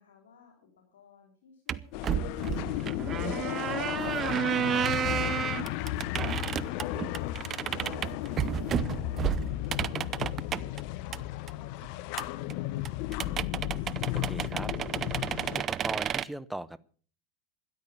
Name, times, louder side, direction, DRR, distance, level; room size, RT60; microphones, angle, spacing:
voice 1, 0.0-10.2 10.5-12.3, left 5 dB, 80° left, 2 dB, 3.6 m, -59 dB
sound 1, 1.7-10.8 11.1-11.2 11.5-11.6 11.8-11.9 12.2-12.3 12.5-12.6 12.9-13.0 13.1-16.2, right 9 dB, 35° right, 0.6 m, -31 dB
sound 2, 1.9-15.6, left 15 dB, 60° left, 0.9 m, -34 dB
voice 2, 14.1-14.7 15.6-16.8, right 1 dB, 5° right, 17 dB, 0.9 m, -39 dB
13.0 x 11.5 x 6.9 m, 0.43 s
hypercardioid pair, 100°, 0 cm